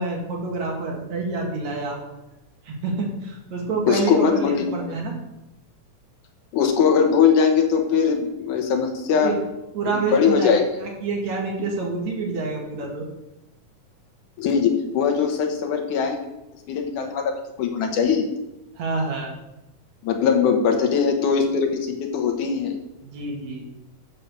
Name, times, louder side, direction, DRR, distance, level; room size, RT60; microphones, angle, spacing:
voice 1, 0.0-2.0 2.6-5.2 9.1-9.4 9.7-10.5 10.8-13.1 18.7-19.3 23.0-23.7, right 3 dB, 65° right, 0 dB, 3.0 m, -27 dB
voice 2, 3.9-4.9 6.5-9.4 10.1-10.7 14.4-16.2 16.7-18.2 20.0-22.7, left 6 dB, 85° left, 4 dB, 2.7 m, -21 dB
7.5 x 6.9 x 6.7 m, 0.93 s
omnidirectional pair, 3.5 m